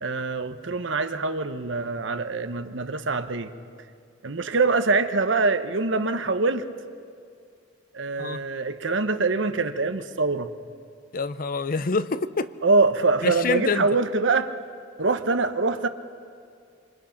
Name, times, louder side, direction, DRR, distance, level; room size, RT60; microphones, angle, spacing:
voice 1, 0.0-3.5 4.2-6.7 7.9-10.5 12.6-14.6 15.0-15.9, right 3 dB, 75° right, 9 dB, 1.0 m, -24 dB
voice 2, 11.1-12.5 13.2-13.9, left 4 dB, 50° left, 13 dB, 0.7 m, -26 dB
26.5 x 25.0 x 5.9 m, 2.3 s
head